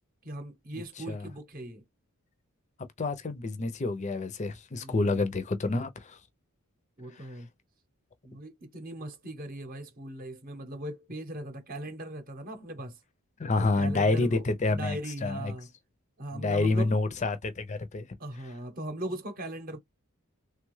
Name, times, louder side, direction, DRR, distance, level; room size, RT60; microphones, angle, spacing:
voice 1, 0.2-1.8 4.8-5.2 7.0-7.5 8.2-13.0 13.6-15.7 16.2-16.9 18.2-19.8, right 1 dB, 40° right, 0.8 m, -39 dB
voice 2, 3.0-6.2 7.1-7.3 13.4-15.5 16.3-18.1, left 3 dB, 35° left, 0.5 m, -28 dB
3.3 x 2.3 x 3.1 m
head